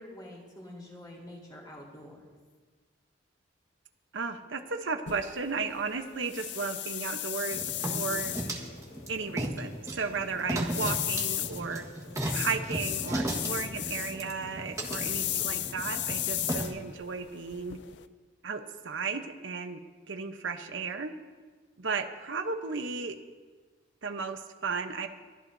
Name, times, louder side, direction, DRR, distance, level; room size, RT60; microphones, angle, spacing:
voice 1, 0.0-2.4, left 1 dB, 20° left, -3 dB, 3.6 m, -47 dB
voice 2, 4.1-7.6 7.9-8.3 9.1-11.8 12.3-17.8 18.4-19.8 20.1-21.1 21.8-23.2 24.0-25.1, right 5 dB, 80° right, 7 dB, 0.9 m, -34 dB
sound 1, 5.1-18.1, left 12 dB, 65° left, 0.6 m, -36 dB
sound 2, 7.5-16.7, right 1 dB, 15° right, 1.5 m, -35 dB
22.5 x 14.0 x 2.7 m, 1.4 s
head